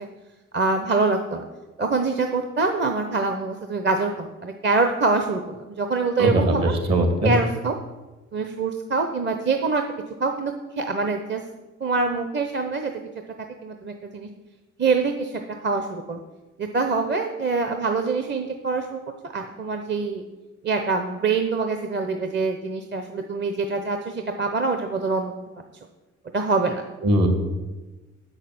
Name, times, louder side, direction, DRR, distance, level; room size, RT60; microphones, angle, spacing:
voice 1, 0.5-1.4 1.8-6.7 7.2-7.7 8.3-9.8 10.2-11.4 11.8-12.9 13.6-14.3 14.8-16.2 16.6-20.2 20.6-25.3 26.3-26.8, right 4 dB, 35° right, 5 dB, 0.9 m, -25 dB
voice 2, 6.2-7.3 27.0-27.3, right 1 dB, 60° right, 5 dB, 2.6 m, -20 dB
8.2 x 6.6 x 7.7 m, 1.2 s
cardioid pair, 90°, 30 cm